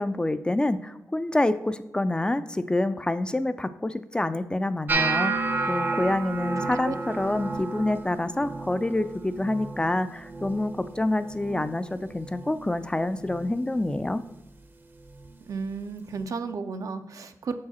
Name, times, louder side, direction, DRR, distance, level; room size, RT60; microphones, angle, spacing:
voice 1, 0.0-14.2, left 1 dB, 15° left, 11 dB, 0.3 m, -27 dB
sound 1, 4.9-11.0 11.3-11.8 12.1-12.7 13.3-13.5 15.3-15.4, right 4 dB, 35° right, 0.7 m, -31 dB
voice 2, 15.4-17.5, right 4 dB, 70° right, 8 dB, 0.6 m, -33 dB
6.7 x 4.7 x 4.2 m, 0.94 s
wide cardioid pair, 90°, 6 cm